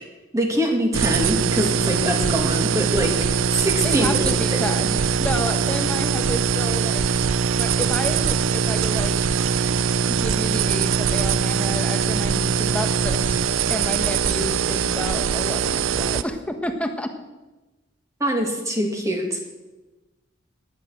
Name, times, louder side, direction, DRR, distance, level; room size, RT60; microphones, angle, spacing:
voice 1, 0.3-3.2 3.5-4.6 18.2-19.5, equal, 15° right, 2 dB, 2.3 m, -24 dB
sound 1, 0.9-16.2, right 7 dB, 80° right, 0.7 m, -22 dB
voice 2, 3.8-7.1 7.6-9.2 10.1-13.4 13.7-17.1, equal, 5° left, 5 dB, 1.2 m, -30 dB
19.0 x 10.0 x 6.4 m, 1.1 s
head